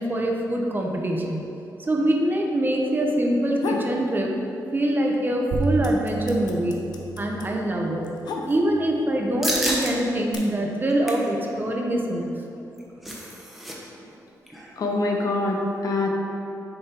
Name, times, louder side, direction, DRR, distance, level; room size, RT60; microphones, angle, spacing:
voice 1, 0.0-1.4 1.8-4.3 4.7-6.8 7.2-8.1 8.5-12.3, right 1 dB, 30° right, 0 dB, 0.9 m, -24 dB
sound 1, 3.3-4.0 4.4-5.1 5.3-9.0 9.7-10.3, left 4 dB, 85° left, 0.7 m, -33 dB
sound 2, 5.5-10.6, right 3 dB, 80° right, 0.7 m, -34 dB
sound 3, 9.4-9.9 10.4-10.5 10.8-11.3 12.6-13.8 14.0-14.1 14.5-14.7, equal, ahead, 1.1 m, -29 dB
voice 2, 14.8-16.1, left 2 dB, 60° left, 0 dB, 0.9 m, -24 dB
6.7 x 4.2 x 4.4 m, 2.7 s
cardioid pair, 90°, 7 cm